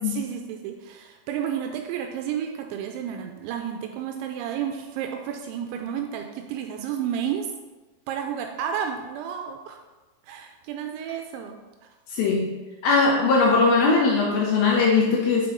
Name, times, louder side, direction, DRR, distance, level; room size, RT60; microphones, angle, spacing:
voice 1, 0.1-7.5 8.1-9.8 10.2-11.6, right 8 dB, 85° right, 4 dB, 2.8 m, -31 dB
voice 2, 12.1-12.5 12.8-15.5, left 4 dB, 80° left, -2 dB, 2.1 m, -20 dB
7.0 x 5.9 x 3.7 m, 1.2 s
omnidirectional pair, 5.3 m